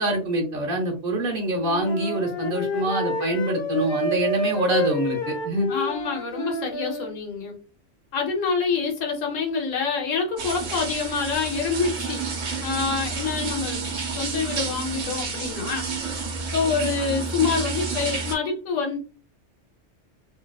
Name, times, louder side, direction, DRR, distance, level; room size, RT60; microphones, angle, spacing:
voice 1, 0.0-5.7, right 1 dB, 50° right, 1 dB, 1.0 m, -25 dB
Wind instrument woodwind instrument, 1.6-7.1, equal, 55° left, 0.7 m, -29 dB
voice 2, 5.6-7.6 8.1-12.2 12.6-15.8 16.1-16.2 16.5-19.0, left 5 dB, 90° left, 1 dB, 1.0 m, -26 dB
sound 1, 10.4-18.4, right 4 dB, 75° right, 1.1 m, -30 dB
2.7 x 2.2 x 2.3 m, 0.34 s
omnidirectional pair, 1.3 m